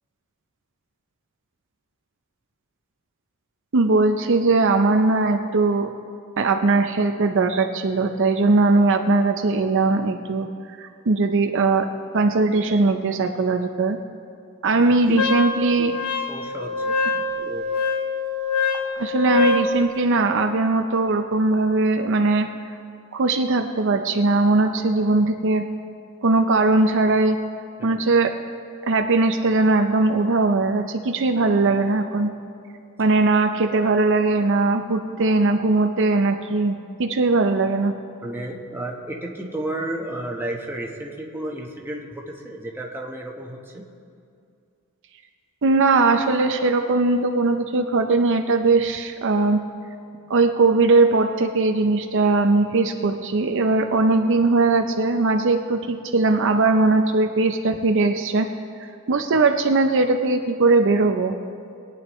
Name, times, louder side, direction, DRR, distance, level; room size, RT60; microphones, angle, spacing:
voice 1, 3.7-5.9 6.4-10.5 10.8-11.9 12.1-14.0 14.6-15.9 17.4-17.5 19.0-22.5 23.1-25.6 26.2-27.4 27.8-28.3 28.9-32.3 33.0-37.9 45.6-49.6 50.3-58.5 59.1-61.3, right 3 dB, 60° right, 5 dB, 0.6 m, -20 dB
voice 2, 14.7-15.2 16.3-17.6 27.8-28.1 38.2-43.8 59.3-59.4, right 1 dB, 10° right, -1 dB, 1.1 m, -33 dB
Wind instrument woodwind instrument, 15.2-19.7, left 4 dB, 75° left, 1.0 m, -24 dB
22.0 x 9.4 x 3.1 m, 2.5 s
head